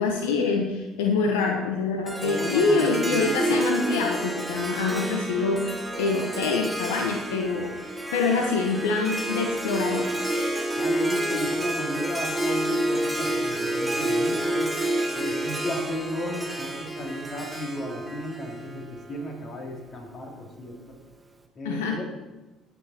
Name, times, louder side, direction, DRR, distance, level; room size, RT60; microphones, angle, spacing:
voice 1, 0.0-10.1 21.6-22.0, left 4 dB, 90° left, 3 dB, 0.9 m, -25 dB
Harp, 2.0-19.3, right 1 dB, 10° right, 1.7 m, -29 dB
voice 2, 2.2-3.3 10.8-14.7 15.1-20.8 21.5-22.0, equal, 45° left, 0 dB, 3.3 m, -34 dB
15.5 x 7.3 x 4.3 m, 1.1 s
supercardioid pair, 70°, 0 cm